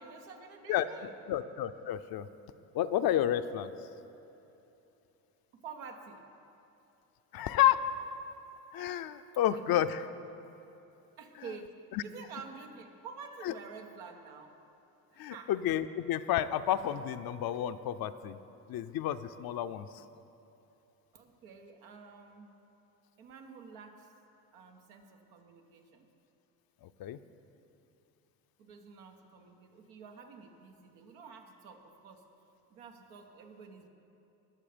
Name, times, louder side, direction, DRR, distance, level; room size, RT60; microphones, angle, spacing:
voice 1, 0.0-1.1 5.6-6.3 9.7-9.8 11.2-14.6 15.1-15.5 21.1-22.5 23.2-24.1 24.5-26.1 28.6-32.2 32.7-33.9, right 5 dB, 85° right, 3 dB, 1.4 m, -49 dB
voice 2, 1.3-2.3 2.7-3.9 7.3-7.9 8.7-10.0 11.4-11.5 11.9-12.0 13.4-13.5 15.2-18.4 18.7-20.0 26.8-27.2, left 11 dB, 55° left, 11 dB, 0.6 m, -31 dB
20.0 x 7.1 x 5.1 m, 2.9 s
supercardioid pair, 75°, 43 cm